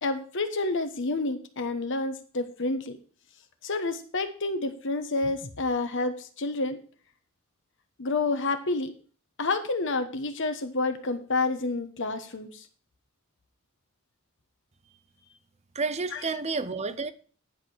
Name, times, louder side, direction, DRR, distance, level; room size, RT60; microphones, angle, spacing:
voice 1, 0.0-3.0 3.6-6.8 8.0-8.9 9.4-12.6 16.1-16.2, left 3 dB, 60° left, 1.2 m, -29 dB
voice 2, 15.7-17.1, right 4 dB, 30° right, 0.6 m, -30 dB
10.5 x 5.0 x 6.2 m
head